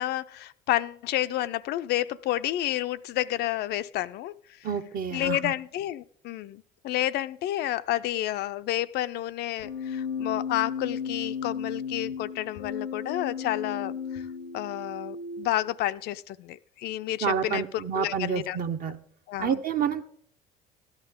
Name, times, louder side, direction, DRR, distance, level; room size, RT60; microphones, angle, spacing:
voice 1, 0.0-4.6 5.1-14.2 14.5-18.6 19.3-19.5, left 14 dB, 55° left, 13 dB, 0.4 m, -30 dB
voice 2, 4.6-5.5 17.2-19.0 19.4-20.0, right 7 dB, 45° right, 8 dB, 0.8 m, -29 dB
Keyboard (musical), 9.6-15.6, left 6 dB, 90° left, 0.8 m, -34 dB
13.5 x 10.5 x 3.6 m, 0.64 s
hypercardioid pair, 65°, 20 cm